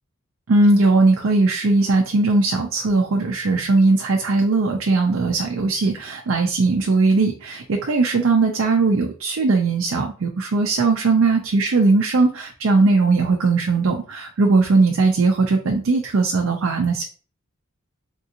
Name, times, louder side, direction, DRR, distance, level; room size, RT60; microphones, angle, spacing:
voice 1, 0.5-17.0, right 3 dB, 75° right, 2 dB, 0.5 m, -19 dB
3.6 x 2.8 x 2.5 m, 0.38 s
head